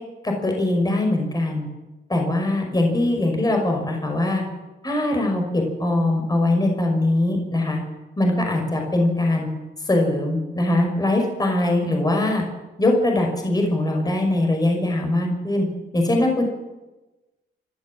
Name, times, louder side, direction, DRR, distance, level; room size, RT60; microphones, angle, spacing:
voice 1, 0.2-1.7 2.1-4.4 4.8-7.8 8.2-9.5 9.9-12.4 12.8-15.7 15.9-16.4, left 1 dB, 20° left, 2 dB, 5.6 m, -21 dB
27.0 x 13.0 x 7.6 m, 1.1 s
cardioid pair, 90°, 20 cm